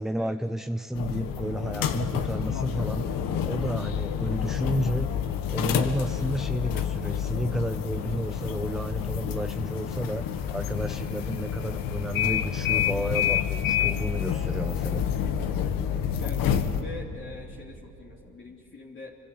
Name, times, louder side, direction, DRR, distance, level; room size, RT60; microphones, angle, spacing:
voice 1, 0.0-5.1 5.5-15.0, equal, ahead, 10 dB, 0.5 m, -32 dB
sound 1, 0.9-16.8, left 9 dB, 75° left, 1.7 m, -28 dB
voice 2, 16.8-19.2, left 4 dB, 35° left, -2 dB, 3.0 m, -44 dB
26.5 x 25.0 x 8.6 m, 2.9 s
supercardioid pair, 80°, 34 cm